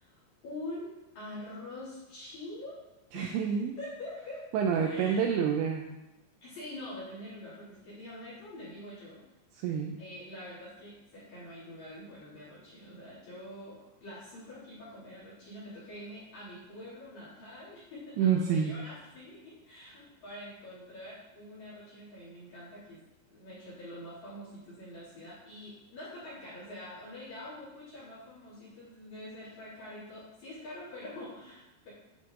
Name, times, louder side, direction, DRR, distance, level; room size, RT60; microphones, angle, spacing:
voice 1, 0.0-2.8 3.1-3.4 3.8-4.5 4.8-5.3 6.4-9.2 10.0-31.9, left 1 dB, 45° left, -10 dB, 3.3 m, -45 dB
voice 2, 3.1-3.8 4.5-5.9 9.5-10.0 18.2-18.7, right 7 dB, 85° right, 2 dB, 2.6 m, -28 dB
9.2 x 4.6 x 3.7 m, 0.97 s
omnidirectional pair, 5.5 m